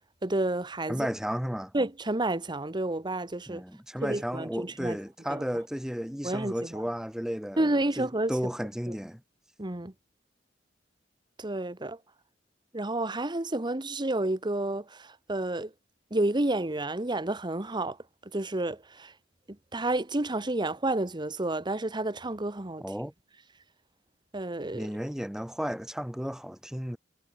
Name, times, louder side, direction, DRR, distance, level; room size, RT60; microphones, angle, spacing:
voice 1, 0.2-1.1 1.7-3.6 4.0-5.0 5.3-5.4 6.2-6.5 7.6-8.3 8.9-9.0 9.6-9.9 11.4-12.0 12.7-15.7 16.1-18.0 18.3-19.1 19.7-22.8 24.3-24.9, right 2 dB, 25° right, 1.3 m, -30 dB
voice 2, 0.9-1.7 3.5-7.7 8.0-9.2 22.8-23.1 24.6-27.0, equal, 5° right, 1.2 m, -33 dB
head